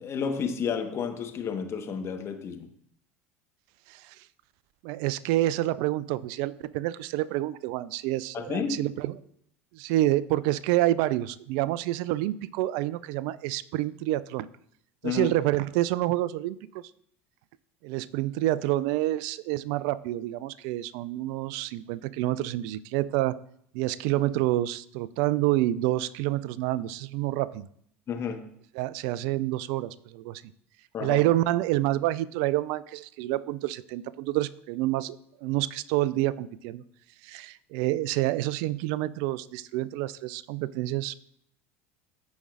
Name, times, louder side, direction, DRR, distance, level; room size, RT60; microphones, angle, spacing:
voice 1, 0.0-2.7 8.3-8.8 15.0-15.4 28.1-28.4 30.9-31.2, left 6 dB, 40° left, 5 dB, 1.3 m, -31 dB
voice 2, 4.8-9.1 9.7-14.5 15.0-16.6 17.8-23.4 23.7-27.7 28.8-30.4 31.0-36.8 37.2-41.1, right 15 dB, 60° right, 18 dB, 0.4 m, -28 dB
14.5 x 5.2 x 2.5 m, 0.68 s
hypercardioid pair, 75°, 7 cm